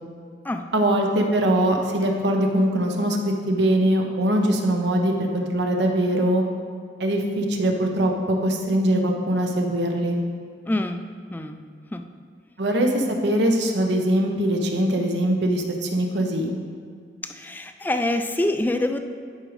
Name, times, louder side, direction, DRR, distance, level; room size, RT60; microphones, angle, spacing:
voice 1, 0.7-6.4 7.0-10.2 12.6-16.6, right 1 dB, 75° right, 2 dB, 0.9 m, -22 dB
voice 2, 10.7-11.0 11.3-11.6 11.9-12.0 17.2-19.0, left 1 dB, 10° left, 7 dB, 0.3 m, -25 dB
11.0 x 5.1 x 3.2 m, 2.2 s
head